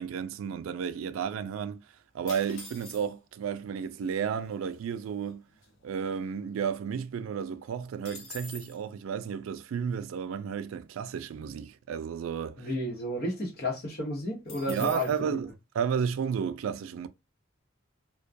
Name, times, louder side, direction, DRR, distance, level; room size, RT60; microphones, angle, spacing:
voice 1, 0.0-1.8 2.1-5.4 5.8-12.7 14.7-17.1, right 7 dB, 90° right, 0.3 m, -32 dB
sound 1, 2.3-3.4 4.2-4.3 4.4-4.8 5.2-6.7 7.0-7.1 7.4-8.8 14.5-15.2, left 2 dB, 90° left, 0.8 m, -46 dB
voice 2, 12.6-15.4, left 1 dB, 50° left, 0.9 m, -32 dB
2.2 x 2.2 x 2.5 m
head